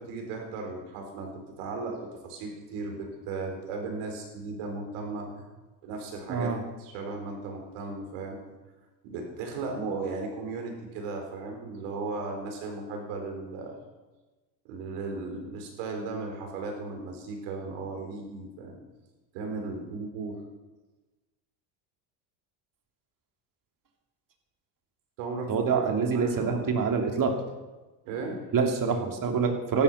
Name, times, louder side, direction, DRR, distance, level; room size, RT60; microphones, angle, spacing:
voice 1, 0.0-5.4 5.8-6.5 6.8-8.4 9.0-13.8 14.6-18.8 19.3-20.4 25.2-25.8 26.1-26.8 28.0-28.4, right 3 dB, 80° right, 3 dB, 4.4 m, -36 dB
voice 2, 6.3-6.6 25.5-27.3 28.5-29.8, right 5 dB, 45° right, 3 dB, 2.9 m, -26 dB
14.5 x 12.0 x 5.7 m, 1.2 s
supercardioid pair, 85°, 48 cm